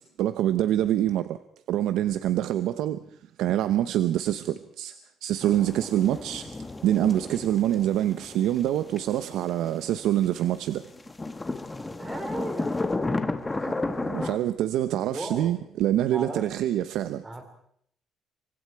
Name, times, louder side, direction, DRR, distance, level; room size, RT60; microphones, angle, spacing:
voice 1, 0.2-1.4 1.7-3.0 3.4-4.9 5.2-6.5 6.8-10.8 13.6-13.7 14.0-17.2, right 12 dB, 85° right, 0.9 m, -25 dB
sound 1, 5.4-10.7 10.9-14.4, left 2 dB, 15° left, 1.6 m, -33 dB
voice 2, 11.7-12.9 15.0-15.5 16.1-16.5 17.2-17.4, right 2 dB, 15° right, 4.4 m, -36 dB
27.5 x 24.5 x 4.8 m
cardioid pair, 155°, 0 cm